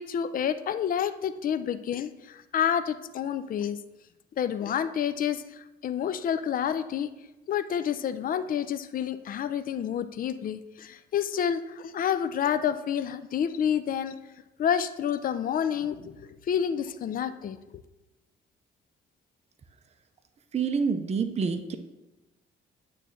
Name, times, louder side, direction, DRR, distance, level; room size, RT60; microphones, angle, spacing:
voice 1, 0.0-2.1 2.5-3.8 4.4-5.4 5.8-7.1 7.5-14.2 14.6-16.1 16.5-17.6, left 8 dB, 45° left, 12 dB, 0.5 m, -28 dB
voice 2, 20.5-21.8, right 5 dB, 35° right, 7 dB, 0.6 m, -27 dB
8.8 x 3.3 x 6.3 m, 1.0 s
cardioid pair, 90°, 20 cm